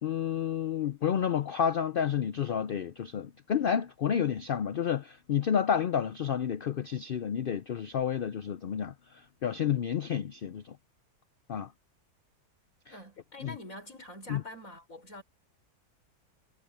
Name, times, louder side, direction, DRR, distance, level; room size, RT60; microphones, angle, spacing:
voice 1, 0.0-10.8 11.5-11.7 13.4-13.5 14.3-14.4, left 8 dB, 85° left, 0.4 m, -30 dB
voice 2, 12.9-15.2, left 1 dB, 55° left, 6.1 m, -45 dB
omnidirectional pair, 1.6 m